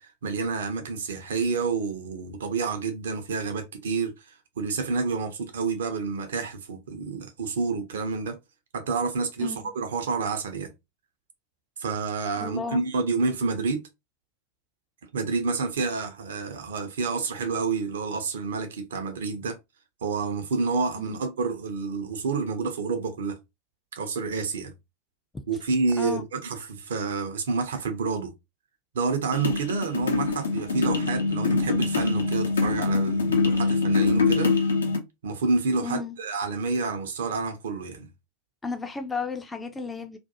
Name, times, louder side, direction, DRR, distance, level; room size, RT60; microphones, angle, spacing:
voice 1, 0.0-4.1 4.6-8.4 8.7-10.7 11.8-13.8 15.1-19.6 20.0-23.4 23.9-24.7 25.5-28.3 28.9-34.5 35.2-38.1, right 4 dB, 60° right, 0.5 m, -29 dB
voice 2, 9.4-9.7 12.4-12.8 21.0-21.2 26.0-26.2 35.8-36.2 38.6-40.2, left 4 dB, 10° left, 0.4 m, -33 dB
sound 1, 29.3-35.0, left 4 dB, 70° left, 0.5 m, -24 dB
2.4 x 2.2 x 2.7 m
figure-of-eight pair, 90°, 0 cm